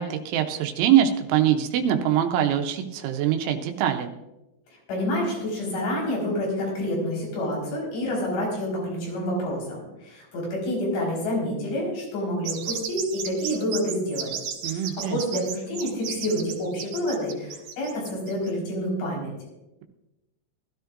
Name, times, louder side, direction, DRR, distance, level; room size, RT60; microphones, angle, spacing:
voice 1, 0.0-4.1 14.6-15.5, right 10 dB, 90° right, 5 dB, 3.3 m, -23 dB
voice 2, 4.9-14.3 14.7-19.3, equal, 85° left, -3 dB, 7.3 m, -28 dB
sound 1, 12.4-18.5, right 8 dB, 70° right, 2.7 m, -34 dB
20.5 x 13.0 x 2.6 m, 0.99 s
omnidirectional pair, 5.3 m